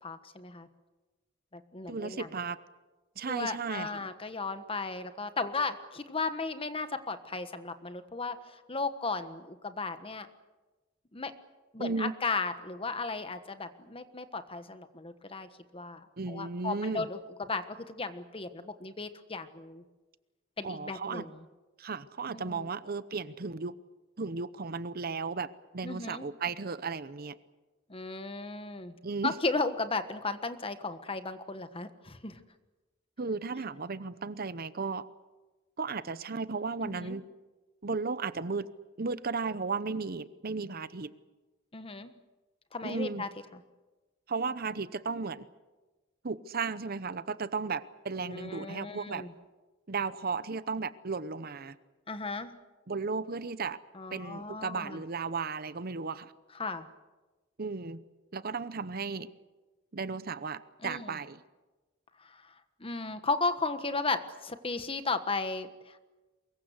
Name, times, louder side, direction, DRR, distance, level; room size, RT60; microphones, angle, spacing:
voice 1, 0.0-0.7 1.5-2.3 3.2-10.3 11.1-11.3 11.7-19.8 20.6-21.4 22.3-22.7 25.8-26.3 27.9-28.9 29.2-32.4 36.8-37.2 41.7-42.1 42.7-43.3 48.3-49.3 52.1-52.5 53.9-55.0 56.5-56.9 60.8-61.1 62.2-62.5 62.8-66.1, left 3 dB, 30° left, 10 dB, 1.3 m, -35 dB
voice 2, 1.9-2.6 3.2-4.1 11.8-12.1 16.2-17.0 20.6-21.2 21.8-23.8 24.2-27.4 29.0-29.3 33.2-35.0 35.8-37.2 37.8-38.7 39.0-41.1 42.8-43.2 44.3-45.5 46.2-49.2 49.9-51.8 52.9-53.8 54.1-56.3 57.6-58.0 58.3-59.3 59.9-61.4, right 4 dB, 50° right, 15 dB, 0.8 m, -35 dB
24.0 x 22.0 x 8.0 m, 1.2 s
head